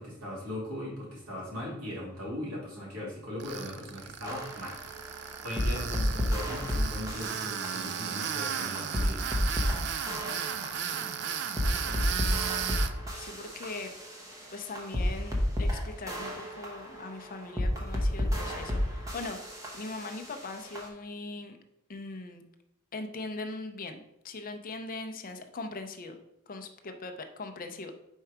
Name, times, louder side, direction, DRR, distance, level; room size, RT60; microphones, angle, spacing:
voice 1, 0.0-4.8 5.1-9.2, left 1 dB, 85° right, -4 dB, 2.4 m, -39 dB
Tools, 3.4-12.9, right 8 dB, 50° right, 0.4 m, -35 dB
sound 1, 4.2-20.9, left 1 dB, 15° right, 0.9 m, -32 dB
voice 2, 10.7-11.1 11.6-12.2 13.2-13.9 14.5-19.4 19.7-21.6 21.9-22.4 22.9-26.2 26.5-27.9, left 3 dB, 40° left, 6 dB, 0.6 m, -40 dB
4.5 x 4.5 x 4.9 m, 0.83 s
head